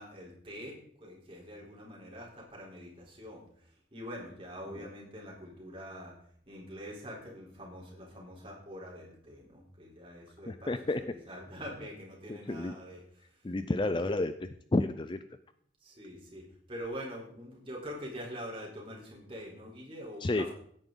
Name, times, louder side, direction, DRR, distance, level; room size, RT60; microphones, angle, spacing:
voice 1, 0.0-3.4 3.9-6.1 6.5-13.0 15.8-16.4 16.7-20.5, equal, 30° right, -2 dB, 3.8 m, -44 dB
voice 2, 10.5-11.0 12.3-12.7 13.4-15.2 20.2-20.5, left 2 dB, 25° left, 11 dB, 0.4 m, -31 dB
16.0 x 9.0 x 3.9 m, 0.63 s
head